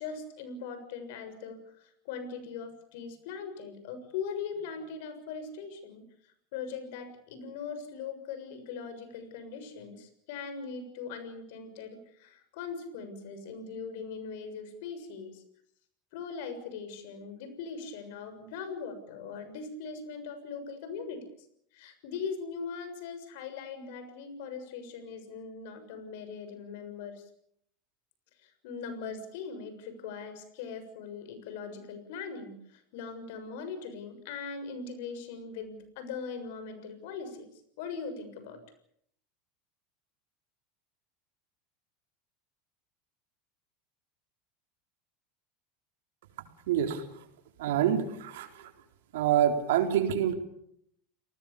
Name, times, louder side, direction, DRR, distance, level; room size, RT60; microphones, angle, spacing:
voice 1, 0.0-6.0 6.5-15.4 16.1-21.2 21.7-27.2 28.4-37.5 37.8-38.6, left 5 dB, 70° left, 9 dB, 6.8 m, -40 dB
voice 2, 46.7-47.0 47.6-48.7 49.1-50.3, right 10 dB, 75° right, 5 dB, 4.0 m, -26 dB
30.0 x 19.5 x 7.1 m, 0.71 s
hypercardioid pair, 95°, 0 cm